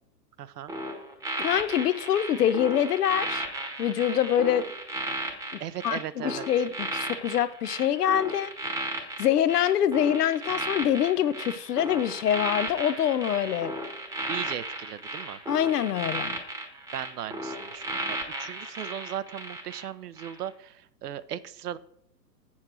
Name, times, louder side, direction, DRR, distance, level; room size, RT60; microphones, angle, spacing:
voice 1, 0.4-0.7 5.6-6.4 14.3-15.4 16.9-21.8, right 10 dB, 70° right, 0.7 m, -37 dB
sound 1, 0.7-19.8 20.2-20.4, right 2 dB, 5° right, 1.1 m, -35 dB
voice 2, 1.4-3.5 3.8-4.6 5.5-8.9 9.2-13.8 15.5-16.4, left 10 dB, 70° left, 0.8 m, -25 dB
7.7 x 7.3 x 4.3 m
hypercardioid pair, 120°, 49 cm